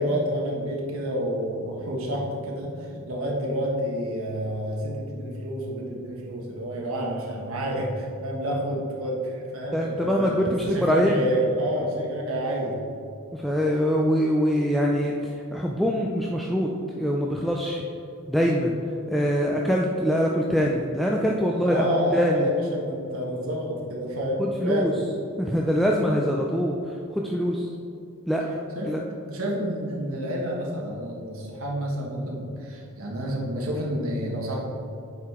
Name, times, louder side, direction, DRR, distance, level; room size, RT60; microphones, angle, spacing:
voice 1, 0.0-12.8 21.5-25.0 28.7-28.9 29.3-34.6, equal, 75° right, -2 dB, 1.3 m, -29 dB
voice 2, 9.7-11.3 13.3-17.8 18.3-18.8 19.1-21.8 22.1-22.5 24.4-24.9 25.4-27.7 28.3-29.0, equal, ahead, -1 dB, 0.3 m, -24 dB
8.0 x 4.7 x 3.6 m, 2.6 s
head